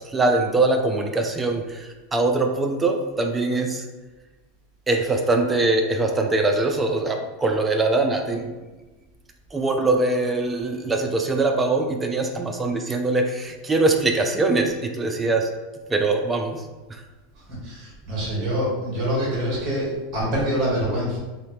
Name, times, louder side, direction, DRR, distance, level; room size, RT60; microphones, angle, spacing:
voice 1, 0.0-3.8 4.9-8.5 9.5-15.5 15.9-16.6 16.9-17.0, right 2 dB, 15° right, 4 dB, 0.3 m, -22 dB
voice 2, 17.5-21.2, equal, 35° right, -4 dB, 1.5 m, -25 dB
3.9 x 2.1 x 2.9 m, 1.2 s
supercardioid pair, 130°, 0 cm